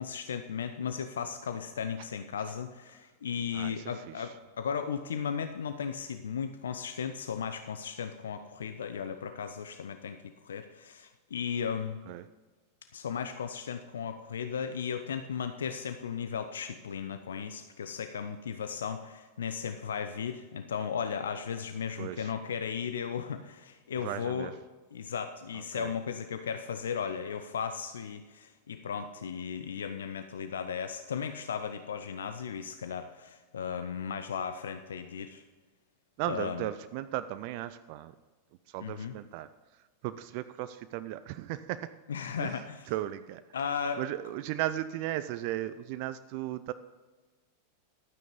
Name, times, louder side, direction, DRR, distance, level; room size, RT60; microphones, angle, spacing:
voice 1, 0.0-12.0 12.9-24.5 24.9-35.4 36.3-36.7 38.8-39.1 42.1-42.8 43.5-44.0, left 7 dB, 65° left, 9 dB, 0.6 m, -36 dB
voice 2, 3.5-4.3 12.1-12.3 22.0-22.3 24.0-24.5 25.5-25.9 36.2-38.1 38.7-39.5 40.0-41.9 42.4-43.4 44.0-46.7, right 14 dB, 45° right, 12 dB, 0.5 m, -36 dB
12.5 x 9.1 x 5.3 m, 1.3 s
figure-of-eight pair, 90°, 0 cm